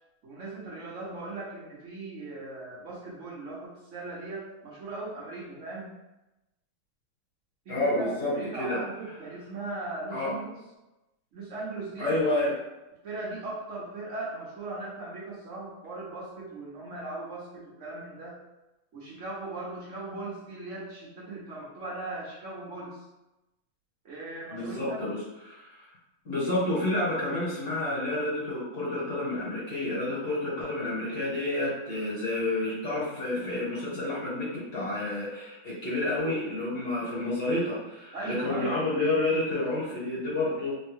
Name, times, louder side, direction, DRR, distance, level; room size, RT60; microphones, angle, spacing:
voice 1, 0.2-5.9 7.7-10.6 11.3-12.1 13.0-18.4 18.9-23.0 24.0-25.1 38.1-38.8, right 2 dB, 65° right, -6 dB, 0.7 m, -38 dB
voice 2, 7.7-9.2 10.1-10.3 12.0-12.5 24.5-25.9 26.2-40.7, left 2 dB, 55° left, -8 dB, 1.4 m, -29 dB
3.3 x 2.2 x 3.0 m, 0.98 s
omnidirectional pair, 2.2 m